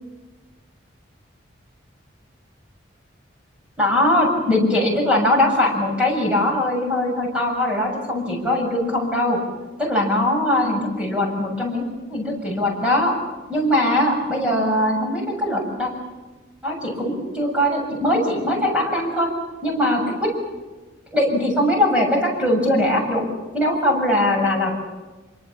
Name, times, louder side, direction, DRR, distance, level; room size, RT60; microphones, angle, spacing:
voice 1, 3.8-9.4 9.8-13.1 13.5-15.9 16.6-19.3 19.6-20.3 21.1-23.2 23.5-24.8, left 1 dB, 5° right, -1 dB, 7.0 m, -21 dB
26.0 x 24.5 x 7.3 m, 1.2 s
head